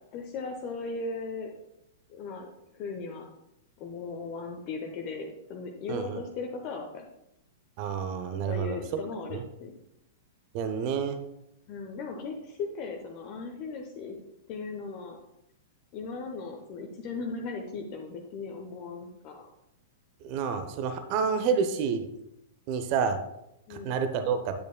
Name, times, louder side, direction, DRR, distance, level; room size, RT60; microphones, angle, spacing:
voice 1, 0.1-1.5 2.1-2.5 2.7-3.2 3.8-7.0 8.5-9.7 11.7-14.2 14.5-15.2 15.9-19.5 23.7-24.0, left 4 dB, 40° left, 2 dB, 0.8 m, -37 dB
voice 2, 7.8-8.8 9.3-9.4 10.5-11.2 20.2-22.1 22.7-23.2 23.7-24.5, right 6 dB, 40° right, 9 dB, 0.7 m, -29 dB
8.5 x 8.3 x 2.2 m, 0.84 s
figure-of-eight pair, 100°, 0 cm